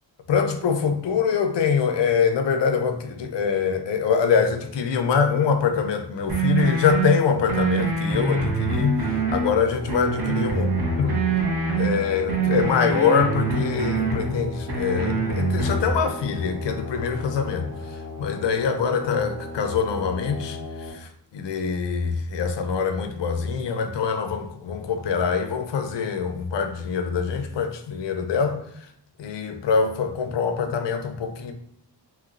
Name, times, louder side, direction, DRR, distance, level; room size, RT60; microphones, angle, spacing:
voice 1, 0.3-10.7 11.0-11.2 11.8-28.6 29.2-31.5, left 6 dB, 75° left, 0.5 m, -24 dB
sound 1, 6.3-7.1 7.5-9.5 9.9-11.9 12.3-14.3 14.7-15.9, right 4 dB, 60° right, 1.0 m, -24 dB
sound 2, 9.0-20.9, left 3 dB, 35° right, 1.3 m, -36 dB
3.0 x 2.9 x 2.5 m
wide cardioid pair, 125°, 44 cm